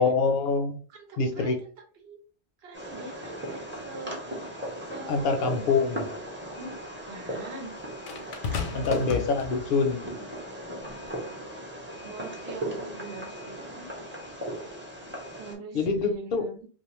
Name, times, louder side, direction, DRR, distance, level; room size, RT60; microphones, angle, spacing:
voice 1, 0.0-0.8 1.2-1.6 5.1-6.1 8.7-10.1 15.7-16.4, left 4 dB, 60° left, 5 dB, 0.7 m, -25 dB
voice 2, 0.9-1.5 2.0-2.2 2.6-4.2 4.8-5.6 6.6-6.8 7.1-7.8 8.5-9.2 12.0-13.9 15.3-16.7, right 3 dB, 65° right, 3 dB, 0.9 m, -43 dB
Fireworks, 2.7-15.6, right 1 dB, 15° right, 0.6 m, -37 dB
sound 1, 5.2-5.3 8.1-10.0 10.9-11.1, left 6 dB, 85° left, 0.9 m, -34 dB
2.4 x 2.4 x 3.0 m, 0.40 s
omnidirectional pair, 1.2 m